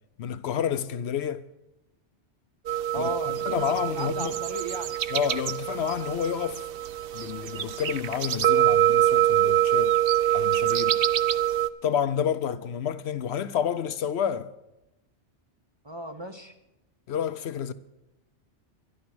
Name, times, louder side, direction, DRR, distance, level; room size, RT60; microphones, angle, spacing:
voice 1, 0.2-1.5 2.9-3.1 3.4-4.4 5.1-6.6 7.1-9.9 10.3-11.0 11.8-14.5 17.1-17.7, left 8 dB, 70° left, 0.8 m, -29 dB
sound 1, 2.7-11.7, right 12 dB, 60° right, 0.7 m, -25 dB
voice 2, 2.9-5.0 15.8-16.5, equal, 30° right, 0.7 m, -35 dB
11.5 x 11.5 x 6.1 m
omnidirectional pair, 1.2 m